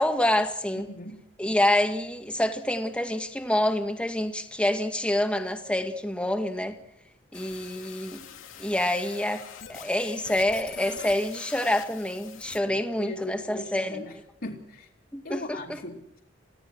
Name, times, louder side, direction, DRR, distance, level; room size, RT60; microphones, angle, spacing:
voice 1, 0.0-0.9 1.4-6.7 7.3-8.2 8.6-14.0 15.1-15.8, left 1 dB, 5° left, 2.0 m, -27 dB
voice 2, 0.9-1.2 12.6-14.2 14.4-14.9 15.2-16.2, left 2 dB, 55° left, 3.1 m, -39 dB
sound 1, 7.3-12.6, left 8 dB, 85° left, 2.5 m, -44 dB
30.0 x 17.0 x 6.3 m
head